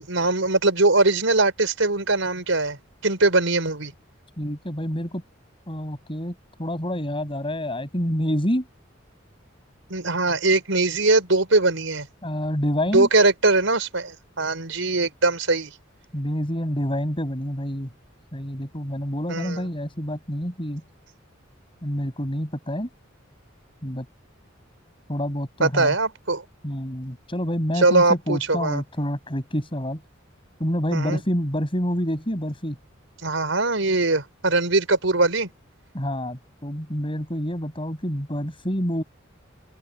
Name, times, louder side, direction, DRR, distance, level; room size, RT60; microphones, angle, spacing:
voice 1, 0.0-2.8 3.0-3.9 9.9-12.1 12.9-15.7 19.3-19.6 25.6-26.4 27.8-28.8 30.9-31.2 33.2-35.5, right 2 dB, 75° right, 4.9 m, -21 dB
voice 2, 4.4-5.2 5.7-8.7 12.2-13.1 16.1-17.9 18.3-20.8 21.8-22.9 23.8-24.1 25.1-25.9 26.6-30.0 30.6-32.8 35.9-39.0, equal, 25° left, 8.0 m, -27 dB
open air
head